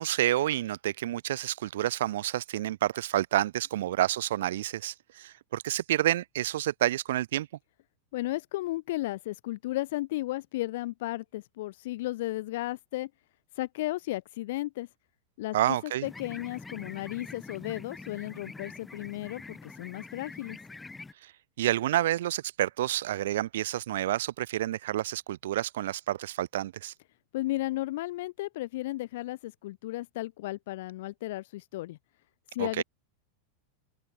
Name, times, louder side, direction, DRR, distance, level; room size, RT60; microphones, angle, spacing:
voice 1, 0.0-7.5 15.5-16.1 21.2-21.3 21.6-26.9 32.6-32.8, right 13 dB, 55° right, 0.5 m, -29 dB
voice 2, 8.1-13.1 13.5-14.9 15.4-20.6 27.3-32.0 32.5-32.8, left 17 dB, 55° left, 0.7 m, -34 dB
sound 1, 16.0-21.1, left 3 dB, 10° left, 0.3 m, -45 dB
figure-of-eight pair, 90°, 0 cm